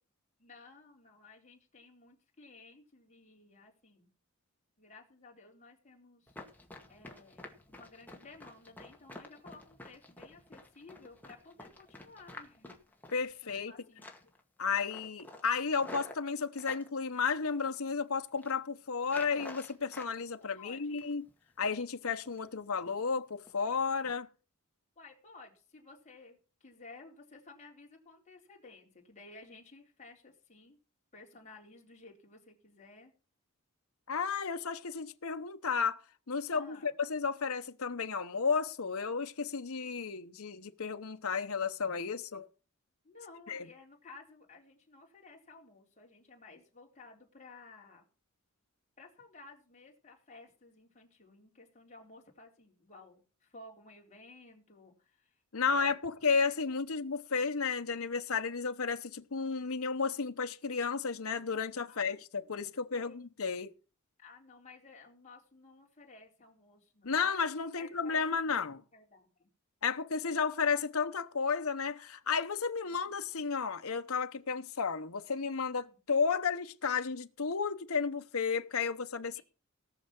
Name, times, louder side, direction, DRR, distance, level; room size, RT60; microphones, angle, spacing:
voice 1, 0.4-4.1 4.8-6.4 6.9-12.8 13.0-13.2 13.4-14.3 20.4-21.0 25.0-30.8 31.1-33.1 36.5-36.9 43.0-48.1 49.0-55.4 55.6-55.9 61.9-62.5 62.9-63.3 64.2-67.3 67.8-69.5 72.9-73.1 75.7-76.0 79.3-79.4, left 3 dB, 35° left, 3.9 m, -55 dB
Run, 6.3-13.7 14.0-14.4 14.7-16.9 17.4-18.0 18.3-18.6 19.0-20.2 20.5-21.3 21.6-21.8 22.2-22.5 22.9-23.0 23.5-23.6 24.0-24.1, left 2 dB, 10° left, 2.0 m, -50 dB
voice 2, 13.1-13.7 14.6-21.2 21.6-24.3 34.1-36.0 36.3-42.5 43.5-43.7 55.5-63.7 67.0-68.8 69.8-79.4, left 5 dB, 75° left, 0.9 m, -33 dB
18.0 x 6.6 x 6.0 m
head